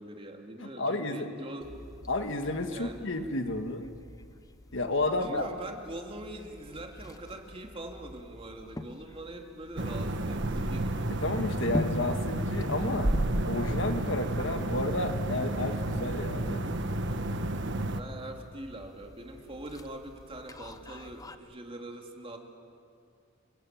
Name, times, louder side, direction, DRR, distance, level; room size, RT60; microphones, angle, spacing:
voice 1, 0.0-1.8 2.7-3.1 5.2-11.2 17.9-22.4, right 1 dB, 25° right, 2 dB, 2.8 m, -43 dB
voice 2, 0.6-1.3 2.1-3.9 4.7-5.5 11.1-13.1 13.5-16.6, left 2 dB, 65° left, 7 dB, 1.7 m, -31 dB
sound 1, 1.6-21.4, left 1 dB, 15° left, 1.0 m, -45 dB
sound 2, 9.8-18.0, right 1 dB, 60° right, 1.4 m, -31 dB
28.5 x 22.5 x 8.9 m, 2.3 s
head